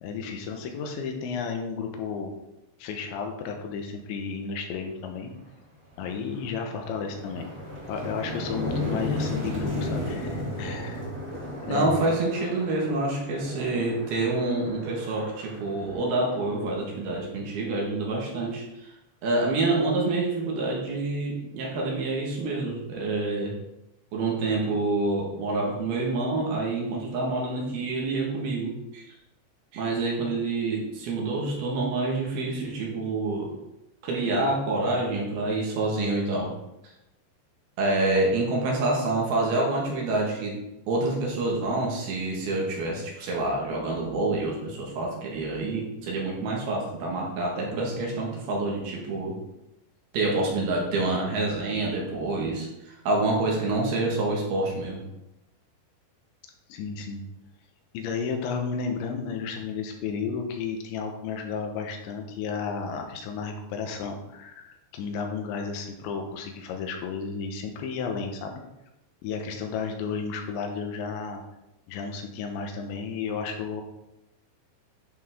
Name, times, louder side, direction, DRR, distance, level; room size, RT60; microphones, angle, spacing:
voice 1, 0.0-2.4 2.8-5.3 6.0-7.5 7.9-11.0 11.6-12.1 56.7-57.3 57.9-68.6 69.2-71.4 71.9-73.8, left 5 dB, 90° left, 3 dB, 3.4 m, -33 dB
sound 1, 5.3-5.4 5.8-16.6, left 1 dB, 25° right, 2.2 m, -34 dB
voice 2, 11.7-18.9 19.2-23.5 24.1-29.0 29.7-33.5 34.0-36.5 37.8-40.6 40.9-49.4 50.1-55.0, right 2 dB, 65° right, -2 dB, 3.5 m, -27 dB
11.5 x 5.8 x 3.7 m, 0.90 s
omnidirectional pair, 5.1 m